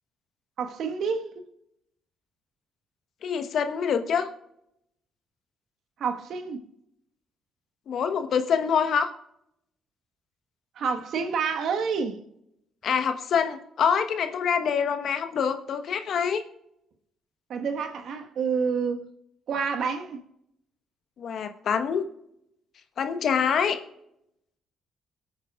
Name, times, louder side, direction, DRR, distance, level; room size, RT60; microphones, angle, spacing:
voice 1, 0.6-1.3 6.0-6.6 10.8-12.2 17.5-19.1 19.5-20.2, right 5 dB, 65° right, 1.4 m, -28 dB
voice 2, 3.2-4.3 7.9-9.1 12.8-16.4 21.2-22.1 23.0-23.8, left 7 dB, 60° left, 1.1 m, -25 dB
22.5 x 8.7 x 2.4 m
hypercardioid pair, 50°, 0 cm